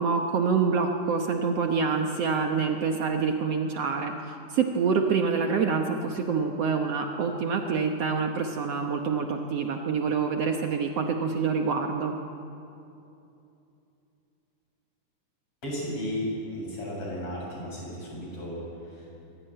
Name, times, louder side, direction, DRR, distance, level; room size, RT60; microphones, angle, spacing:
voice 1, 0.0-4.1 4.5-12.2, right 5 dB, 60° right, 3 dB, 1.8 m, -26 dB
voice 2, 15.6-19.1, equal, 40° left, -4 dB, 8.3 m, -34 dB
22.5 x 16.5 x 9.0 m, 2.7 s
omnidirectional pair, 3.9 m